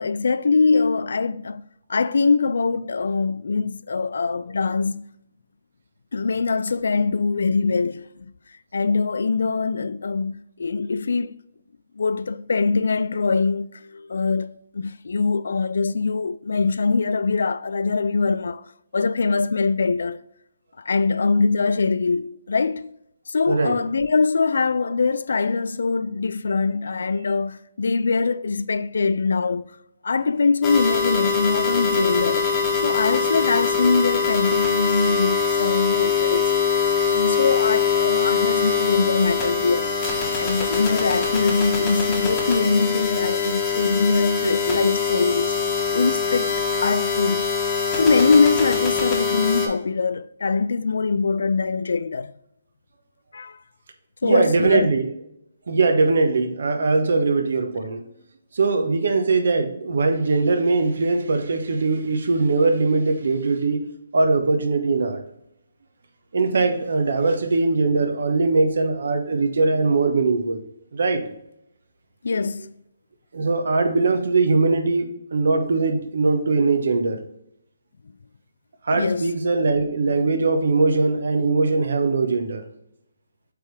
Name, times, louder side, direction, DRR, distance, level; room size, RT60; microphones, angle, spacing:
voice 1, 0.0-1.6 1.9-5.0 6.1-8.1 8.7-11.3 12.0-18.7 18.9-20.2 20.8-22.9 23.3-29.8 30.0-32.5 32.8-36.6 37.1-40.0 40.4-45.5 45.9-47.5 48.0-52.3 53.3-53.6 54.2-54.9 72.2-72.7 78.9-79.4, left 4 dB, 75° left, 0.4 m, -22 dB
sound 1, 30.6-49.7, left 5 dB, 15° left, 1.2 m, -23 dB
voice 2, 54.2-55.1 55.7-58.0 58.5-63.9 64.1-65.2 66.3-70.6 70.9-71.2 73.3-77.2 78.8-82.6, right 3 dB, 65° right, 1.1 m, -21 dB
8.3 x 3.6 x 3.3 m
hypercardioid pair, 170°, 0 cm